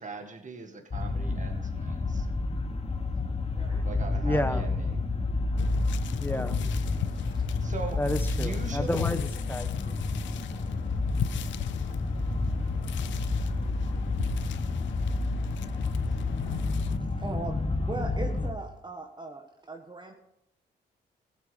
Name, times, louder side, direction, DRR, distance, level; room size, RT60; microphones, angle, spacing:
voice 1, 0.0-2.3 3.8-5.0 7.1-7.2 7.6-8.0 8.3-9.0, right 4 dB, 40° right, 4 dB, 1.9 m, -40 dB
sound 1, 0.9-18.5, left 3 dB, 30° left, 1.5 m, -30 dB
voice 2, 4.2-4.7 6.2-6.6 8.0-9.9, left 1 dB, 10° left, 10 dB, 1.2 m, -31 dB
sound 2, 5.6-17.0, left 12 dB, 80° left, 0.5 m, -37 dB
voice 3, 5.9-6.7 7.1-7.4 17.1-17.6 17.9-20.1, right 3 dB, 25° right, 3 dB, 1.3 m, -40 dB
15.0 x 8.2 x 5.2 m, 0.84 s
cardioid pair, 60°, 19 cm